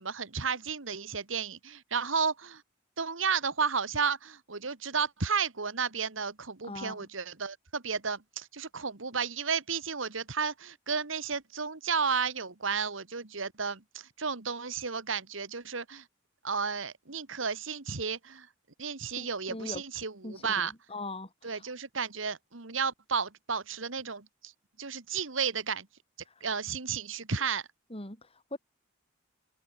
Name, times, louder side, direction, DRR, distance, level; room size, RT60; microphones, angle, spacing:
voice 1, 0.0-2.6 3.0-16.0 16.4-18.5 18.8-20.7 21.4-24.5 24.8-25.9 26.4-27.6, right 5 dB, 80° right, 1.9 m, -33 dB
voice 2, 6.6-7.1 19.2-19.8 20.2-21.7 26.3-26.4 27.9-28.6, left 2 dB, 30° left, 4.9 m, -41 dB
head